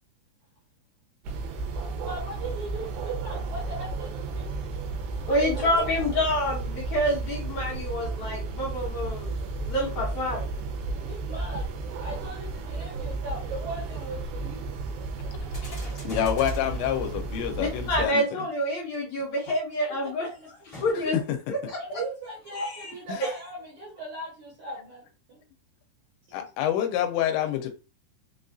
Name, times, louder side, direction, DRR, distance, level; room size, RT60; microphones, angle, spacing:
sound 1, 1.2-18.1, right 3 dB, 90° right, 3.2 m, -33 dB
voice 1, 2.0-4.6 5.3-5.9 10.9-11.7 12.0-14.7 20.2-20.5 21.8-25.4, right 2 dB, 65° right, -4 dB, 2.0 m, -38 dB
voice 2, 5.3-9.3 9.7-10.5 17.6-20.3 20.8-21.2 21.5-22.0 22.5-22.7, equal, 60° left, -5 dB, 2.0 m, -27 dB
sound 2, 15.5-17.4 20.7-21.4, equal, 35° left, 0.8 m, -46 dB
voice 3, 16.0-18.2 21.1-21.2 23.1-23.2 26.3-27.7, left 10 dB, 90° left, 5 dB, 3.0 m, -27 dB
6.8 x 2.4 x 2.6 m, 0.32 s
omnidirectional pair, 5.0 m